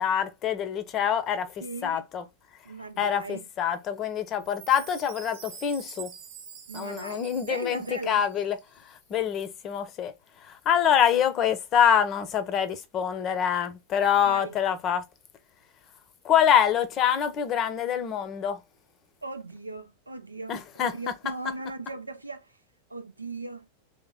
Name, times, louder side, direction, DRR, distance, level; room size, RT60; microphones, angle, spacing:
voice 1, 0.0-1.5 1.8-2.2 3.0-6.1 6.7-8.6 8.8-10.1 10.4-15.0 16.2-18.6 20.5-20.9, left 9 dB, 30° left, 0.6 m, -25 dB
voice 2, 1.6-2.0 2.6-3.5 6.7-8.2 14.2-14.6 19.2-22.5 22.9-23.7, right 2 dB, 85° right, 0.5 m, -38 dB
Chime, 4.4-8.6, right 8 dB, 50° right, 0.9 m, -46 dB
3.2 x 2.9 x 3.6 m
figure-of-eight pair, 90°, 0 cm